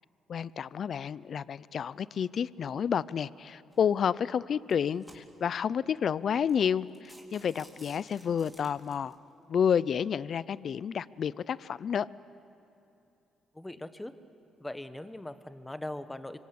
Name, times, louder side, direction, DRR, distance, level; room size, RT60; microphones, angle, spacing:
voice 1, 0.3-9.2 9.5-12.1, left 7 dB, 55° left, 19 dB, 0.5 m, -30 dB
sound 1, 3.7-4.0 4.6-5.6 6.1-6.2 6.5-6.6 6.9-9.1, right 1 dB, 10° right, 3.9 m, -55 dB
voice 2, 13.5-14.1 14.6-16.4, left 1 dB, 10° left, 11 dB, 1.2 m, -40 dB
25.5 x 24.5 x 8.6 m, 2.8 s
cardioid pair, 90°, 0 cm